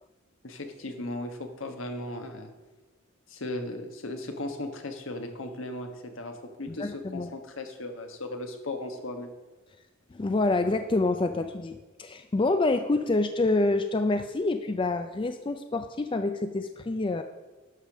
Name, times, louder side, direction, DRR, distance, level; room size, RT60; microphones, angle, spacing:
voice 1, 0.4-2.5 3.3-9.3, left 2 dB, 75° left, 5 dB, 1.3 m, -37 dB
voice 2, 6.7-7.3 10.1-17.2, left 2 dB, 25° left, 8 dB, 0.4 m, -27 dB
11.0 x 5.1 x 6.1 m, 1.2 s
head